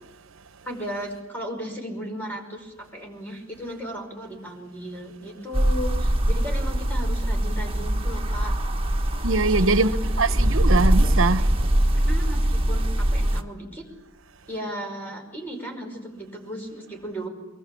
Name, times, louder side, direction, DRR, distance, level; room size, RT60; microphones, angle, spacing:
voice 1, 0.7-8.5 9.6-10.2 11.9-13.9 14.5-17.3, equal, 10° left, 5.4 m, -35 dB
sound 1, 5.5-13.4, right 1 dB, 25° right, 1.4 m, -22 dB
voice 2, 9.2-9.9 10.2-11.5, right 3 dB, 65° right, 1.0 m, -22 dB
24.0 x 21.0 x 8.5 m
head